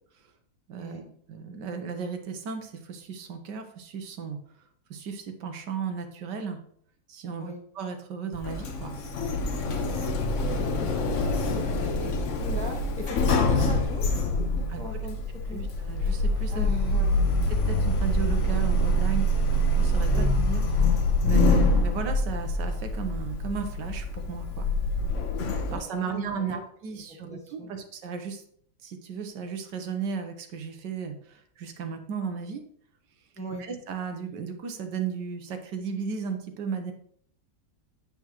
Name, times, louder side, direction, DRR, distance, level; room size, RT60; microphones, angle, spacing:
voice 1, 0.7-4.4 4.9-6.6 7.1-8.9 14.7-15.0 15.5-16.7 17.5-24.7 25.7-28.4 28.8-32.6 33.6-36.9, right 6 dB, 75° right, 6 dB, 1.5 m, -35 dB
Sliding door, 8.3-25.7, left 1 dB, 55° left, 1.0 m, -25 dB
voice 2, 9.7-11.1 11.5-14.4 14.8-15.7 16.5-17.3 20.1-20.3 25.6-26.6 26.9-27.7 33.4-33.6, left 1 dB, 5° left, -1 dB, 1.0 m, -40 dB
8.6 x 5.8 x 3.0 m, 0.63 s
omnidirectional pair, 1.9 m